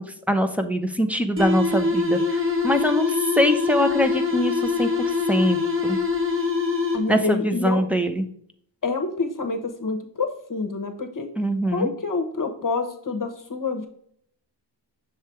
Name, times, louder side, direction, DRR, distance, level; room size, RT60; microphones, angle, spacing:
voice 1, 0.0-6.0 7.1-8.2 11.4-11.9, equal, 5° right, 6 dB, 0.7 m, -23 dB
sound 1, 1.4-7.3, left 4 dB, 30° right, 1.3 m, -24 dB
voice 2, 6.9-7.8 8.8-11.3 11.7-13.9, left 3 dB, 45° left, 6 dB, 1.0 m, -27 dB
6.6 x 3.3 x 4.6 m, 0.65 s
wide cardioid pair, 95°, 44 cm